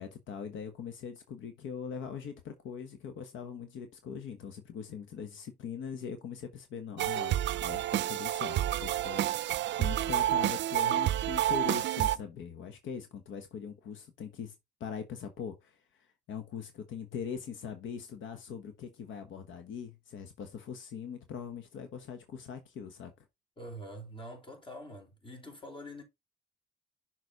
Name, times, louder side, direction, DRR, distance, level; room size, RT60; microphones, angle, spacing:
voice 1, 0.0-14.5 14.8-23.1, left 7 dB, 75° left, 1.2 m, -41 dB
sound 1, 7.0-12.2, right 13 dB, 65° right, 0.4 m, -29 dB
voice 2, 23.6-26.0, equal, 25° left, 2.9 m, -45 dB
6.4 x 4.0 x 3.9 m
cardioid pair, 90°, 20 cm